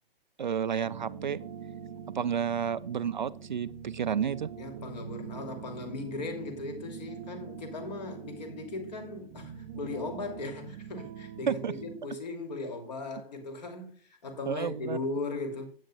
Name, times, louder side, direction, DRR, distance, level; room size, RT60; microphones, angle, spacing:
voice 1, 0.4-1.4 2.1-4.5 11.5-11.7 14.5-15.0, right 7 dB, 50° right, 0.4 m, -31 dB
sound 1, 0.8-12.0, right 8 dB, 20° right, 0.7 m, -44 dB
voice 2, 4.6-15.7, left 3 dB, 45° left, 2.8 m, -38 dB
15.5 x 8.7 x 2.3 m
figure-of-eight pair, 130°, 30 cm